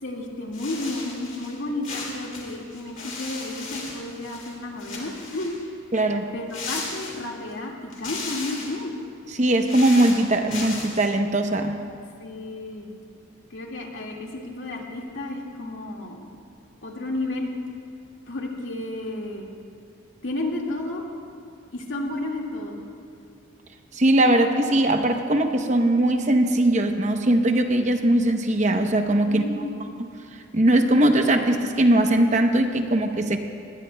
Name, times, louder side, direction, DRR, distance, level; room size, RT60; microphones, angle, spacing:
voice 1, 0.0-5.5 6.3-8.9 12.2-12.9 13.5-16.3 16.8-17.5 18.3-19.5 20.2-21.0 21.7-22.8 29.2-29.8, left 2 dB, 75° left, -1 dB, 1.9 m, -32 dB
sound 1, 0.5-1.5 1.8-4.5 4.8-5.6 6.5-7.5 7.9-8.8 9.4-11.0, left 3 dB, 40° left, 2.9 m, -36 dB
voice 2, 5.9-6.3 9.4-11.8 23.9-29.7 30.5-33.4, right 1 dB, 35° right, 5 dB, 0.8 m, -20 dB
19.5 x 19.5 x 2.2 m, 2.6 s
head